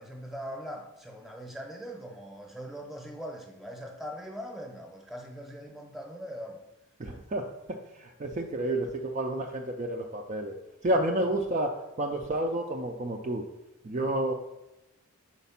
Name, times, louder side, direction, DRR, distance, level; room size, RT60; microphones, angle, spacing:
voice 1, 0.0-6.6 13.9-14.1, equal, ahead, 2 dB, 0.8 m, -41 dB
voice 2, 7.0-10.5 10.8-13.5 13.8-14.3, right 1 dB, 30° right, 1 dB, 0.4 m, -30 dB
4.5 x 4.1 x 5.7 m, 0.92 s
head